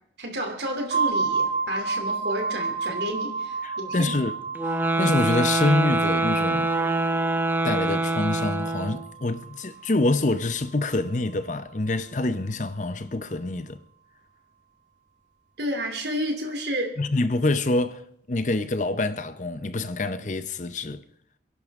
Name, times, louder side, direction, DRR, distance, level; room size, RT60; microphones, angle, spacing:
voice 1, 0.2-4.1 15.6-16.9, equal, 70° right, 2.9 m, -31 dB
sound 1, 0.9-10.5, right 4 dB, 45° right, 2.7 m, -31 dB
voice 2, 3.6-4.3 5.0-6.7 7.6-13.8 17.0-21.0, left 2 dB, 40° left, 0.7 m, -26 dB
sound 2, 4.6-9.1, right 2 dB, 10° right, 0.6 m, -25 dB
29.0 x 11.0 x 3.6 m
head